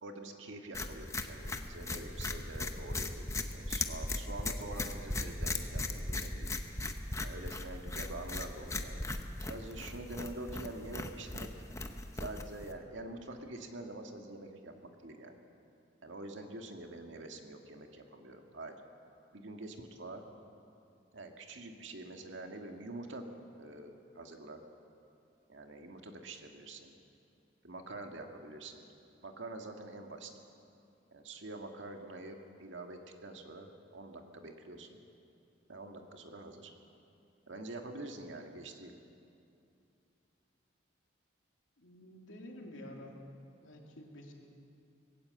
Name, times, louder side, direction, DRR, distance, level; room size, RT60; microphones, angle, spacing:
voice 1, 0.0-3.2 3.5-6.5 7.2-9.1 9.4-11.5 12.1-14.7 15.0-15.4 16.0-18.8 19.3-20.2 21.1-23.2 23.6-24.6 25.5-26.9 27.6-28.8 29.2-30.3 31.1-35.0 35.7-36.7 37.5-38.9, right 2 dB, 80° right, 3 dB, 1.8 m, -46 dB
sound 1, 0.7-12.7, left 2 dB, 15° left, 0.8 m, -38 dB
voice 2, 41.8-43.2 43.6-44.3, left 1 dB, 85° left, 0 dB, 3.0 m, -49 dB
19.5 x 17.5 x 7.8 m, 2.6 s
head